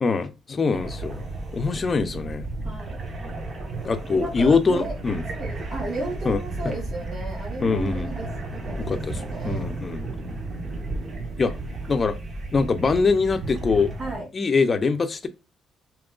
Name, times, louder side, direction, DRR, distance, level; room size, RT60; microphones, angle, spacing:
voice 1, 0.0-1.2 1.5-2.5 3.8-5.2 6.2-6.4 7.6-8.1 8.8-10.1 11.4-11.5 11.9-12.1 12.5-13.9 14.3-15.3, left 4 dB, 35° left, 0.6 m, -23 dB
sound 1, 0.7-14.2, right 2 dB, 45° right, 1.2 m, -33 dB
voice 2, 2.6-3.0 4.0-4.9 5.3-9.7 14.0-14.3, right 2 dB, 65° right, 2.4 m, -34 dB
5.1 x 2.9 x 2.4 m
cardioid pair, 90°, 0 cm